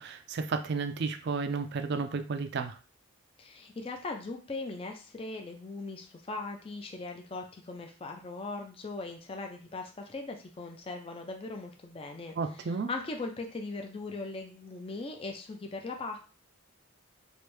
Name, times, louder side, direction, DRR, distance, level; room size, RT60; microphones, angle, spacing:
voice 1, 0.0-2.8 12.4-12.9, right 4 dB, 50° right, 7 dB, 0.4 m, -32 dB
voice 2, 3.4-16.2, left 3 dB, 25° left, 3 dB, 0.4 m, -39 dB
3.2 x 2.5 x 3.1 m, 0.36 s
head